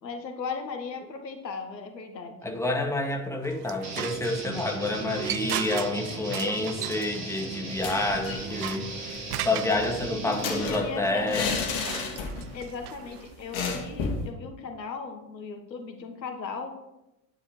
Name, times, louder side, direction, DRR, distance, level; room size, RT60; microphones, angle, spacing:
voice 1, 0.0-2.6 10.3-11.4 12.5-16.7, left 5 dB, 80° left, 6 dB, 1.4 m, -37 dB
voice 2, 2.4-11.7, left 2 dB, 5° left, 2 dB, 2.1 m, -29 dB
sound 1, 3.4-9.9 11.2-13.5, right 13 dB, 65° right, 0.7 m, -37 dB
sound 2, 3.8-10.7, right 2 dB, 30° right, 3.7 m, -37 dB
sound 3, 7.7-8.5 8.8-8.9 9.2-12.6 12.9-13.0 13.5-14.3, left 5 dB, 60° left, 2.6 m, -32 dB
11.0 x 9.7 x 4.7 m, 0.92 s
figure-of-eight pair, 65°, 50 cm